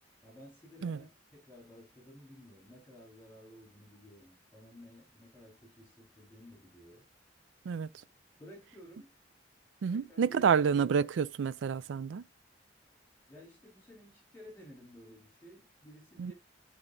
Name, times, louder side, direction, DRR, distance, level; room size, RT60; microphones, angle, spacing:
voice 1, 0.2-7.1 8.4-9.1 9.9-10.7 13.3-16.3, equal, 10° left, 3.9 m, -54 dB
voice 2, 9.8-12.2 16.2-16.3, right 6 dB, 80° right, 0.4 m, -29 dB
11.0 x 4.8 x 2.6 m
head